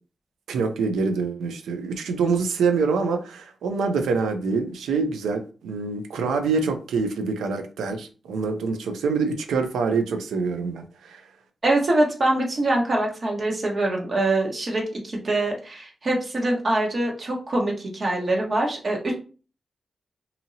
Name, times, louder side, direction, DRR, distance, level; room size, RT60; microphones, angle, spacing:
voice 1, 0.5-11.2, right 4 dB, 90° right, 0.4 m, -25 dB
voice 2, 11.6-19.2, right 2 dB, 55° right, 1.1 m, -24 dB
2.7 x 2.7 x 2.6 m
supercardioid pair, 45°, 0 cm